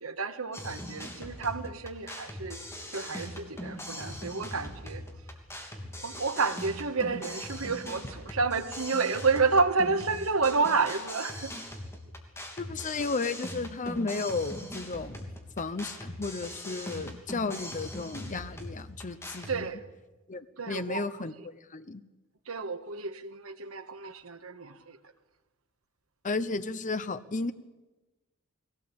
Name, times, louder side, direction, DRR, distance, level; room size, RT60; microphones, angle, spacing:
voice 1, 0.0-2.6 2.9-5.0 6.0-11.5 19.5-19.8 20.6-21.1 22.5-25.0, right 4 dB, 75° right, 9 dB, 1.5 m, -30 dB
sound 1, 0.5-19.6, left 1 dB, 15° left, 3.0 m, -41 dB
voice 2, 12.6-15.3 15.6-19.7 20.3-22.0 26.2-27.5, left 3 dB, 35° left, 13 dB, 0.8 m, -34 dB
22.0 x 17.5 x 8.6 m, 1.1 s
head